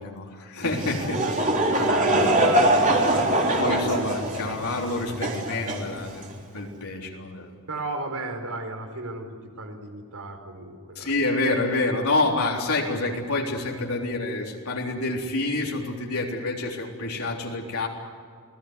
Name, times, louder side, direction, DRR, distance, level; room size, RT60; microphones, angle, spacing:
voice 1, 0.0-1.2 1.8-1.9 3.6-7.5 11.0-17.9, left 2 dB, 75° left, -1 dB, 3.9 m, -28 dB
Laughter / Crowd, 0.6-6.4, right 1 dB, 35° right, 3.7 m, -23 dB
voice 2, 1.2-4.0 7.7-11.1, right 2 dB, 80° right, 6 dB, 4.5 m, -35 dB
28.5 x 19.0 x 8.3 m, 2.1 s
head